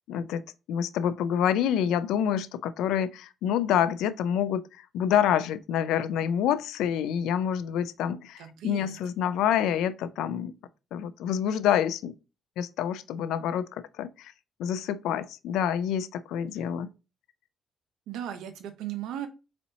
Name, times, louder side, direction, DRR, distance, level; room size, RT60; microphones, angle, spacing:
voice 1, 0.1-0.4 0.7-10.5 10.9-12.1 12.6-14.3 14.6-16.9, left 9 dB, 90° left, 0.4 m, -27 dB
voice 2, 8.4-8.9 18.1-19.3, right 10 dB, 85° right, 0.8 m, -36 dB
4.2 x 4.2 x 2.7 m
cardioid pair, 90°, 0 cm